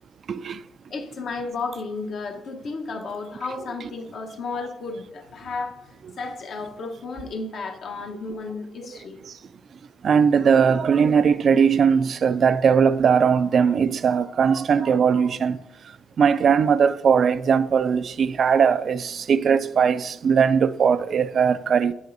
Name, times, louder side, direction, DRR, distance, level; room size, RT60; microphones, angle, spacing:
voice 1, 0.3-0.6 10.0-15.6 16.2-21.9, right 6 dB, 55° right, 0.3 m, -19 dB
voice 2, 0.9-9.2, left 3 dB, 65° left, 1.1 m, -33 dB
7.8 x 7.6 x 2.7 m
cardioid pair, 90°, 0 cm